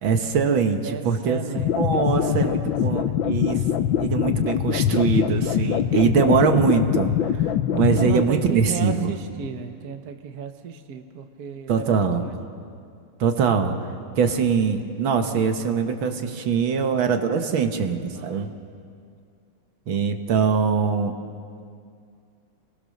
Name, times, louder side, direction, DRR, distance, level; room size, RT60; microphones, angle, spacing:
voice 1, 0.0-1.4 1.8-3.6 4.0-7.1 7.7-9.2 11.7-12.3 13.2-13.8 14.2-18.5 19.9-21.1, right 6 dB, 70° right, 6 dB, 2.1 m, -22 dB
voice 2, 0.8-3.2 8.0-12.4 18.1-18.5, right 7 dB, 55° right, 7 dB, 1.4 m, -35 dB
sound 1, 1.6-8.2, left 10 dB, 75° left, 1.5 m, -23 dB
27.5 x 21.5 x 6.5 m, 2.3 s
omnidirectional pair, 2.2 m